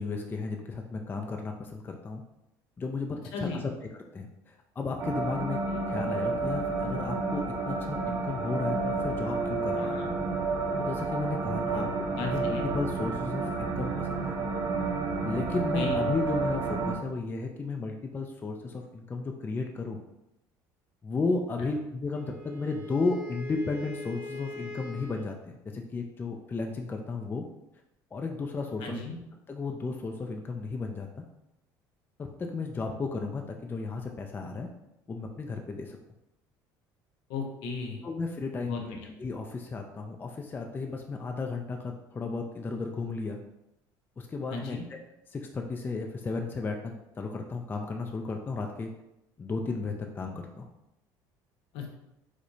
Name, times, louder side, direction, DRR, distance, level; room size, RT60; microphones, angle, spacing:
voice 1, 0.0-2.2 2.8-3.7 4.1-10.0 10.8-11.9 12.2-14.4 15.2-20.0 21.0-27.4 28.1-29.0 29.5-31.2 32.2-34.7 35.1-36.0 38.0-43.4 44.2-45.0 45.3-48.9 49.4-50.7, left 3 dB, 25° left, 2 dB, 0.4 m, -34 dB
voice 2, 3.3-3.6 9.8-10.1 11.7-12.7 15.5-15.9 28.8-29.2 37.3-38.0 38.6-38.8 44.5-44.8 51.7-51.9, left 4 dB, 80° left, 1 dB, 0.8 m, -36 dB
sound 1, 5.0-17.0, right 3 dB, 45° right, 0.5 m, -30 dB
Wind instrument woodwind instrument, 22.1-25.4, left 2 dB, 10° right, 1.0 m, -42 dB
4.6 x 2.1 x 2.6 m, 0.87 s
supercardioid pair, 95°, 9 cm